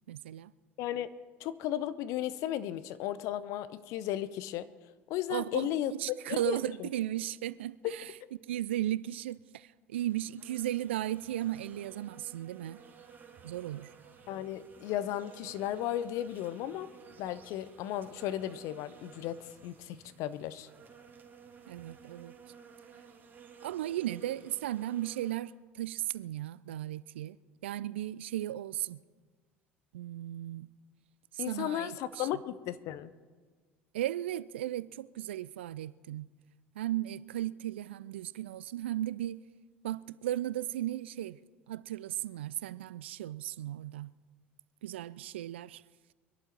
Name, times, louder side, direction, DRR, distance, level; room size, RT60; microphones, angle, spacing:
voice 1, 0.1-0.5 5.3-5.7 6.0-8.1 8.5-12.8 13.4-13.9 21.7-22.3 23.6-27.4 27.6-29.0 29.9-30.7 31.3-32.3 33.9-36.3 36.8-39.4 39.8-41.4 41.7-44.1 44.8-45.8, right 13 dB, 70° right, 0.4 m, -36 dB
voice 2, 0.8-1.1 1.4-4.7 5.1-5.9 6.3-6.9 14.3-16.9 17.2-20.7 31.4-33.1, left 12 dB, 55° left, 0.8 m, -35 dB
sound 1, 9.9-25.4, right 7 dB, 30° right, 2.6 m, -55 dB
23.5 x 11.5 x 4.5 m
figure-of-eight pair, 65°, 6 cm